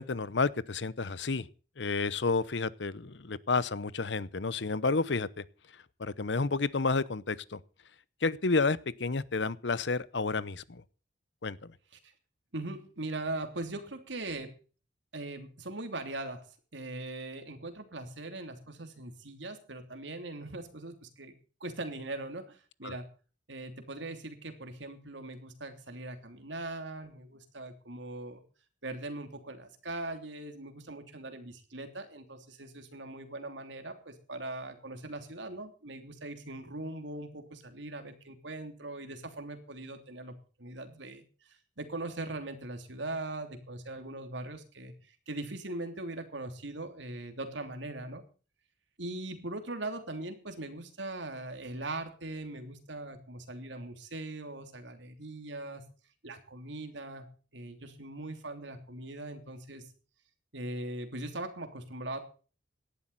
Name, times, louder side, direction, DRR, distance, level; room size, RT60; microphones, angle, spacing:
voice 1, 0.0-1.5 1.8-5.4 6.0-7.6 8.2-10.8 11.4-11.7 22.8-22.9, left 4 dB, 70° left, 19 dB, 0.8 m, -30 dB
voice 2, 12.5-14.5 15.1-16.5 16.7-21.3 21.6-23.1 23.5-28.4 28.8-48.2 49.0-55.8 56.2-57.3 57.5-59.9 60.5-62.2, right 2 dB, 75° right, 7 dB, 3.0 m, -40 dB
17.5 x 12.0 x 4.1 m, 0.38 s
head